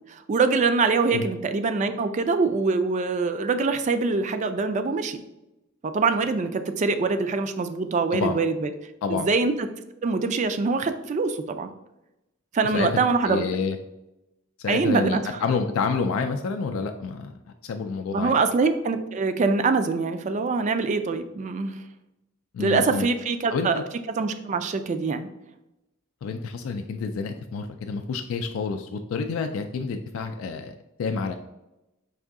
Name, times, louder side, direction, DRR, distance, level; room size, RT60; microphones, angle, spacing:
voice 1, 0.1-5.2 5.9-8.7 9.1-9.5 10.0-11.7 12.5-13.4 14.7-15.2 18.1-21.8 22.6-23.8 24.2-25.3, right 4 dB, 35° right, 9 dB, 0.3 m, -24 dB
voice 2, 8.1-8.4 9.0-9.3 12.7-12.9 13.2-13.8 14.6-18.3 22.5-23.1 23.5-23.7 26.2-31.3, left 5 dB, 80° left, 5 dB, 0.3 m, -28 dB
4.8 x 2.6 x 3.5 m, 0.93 s
head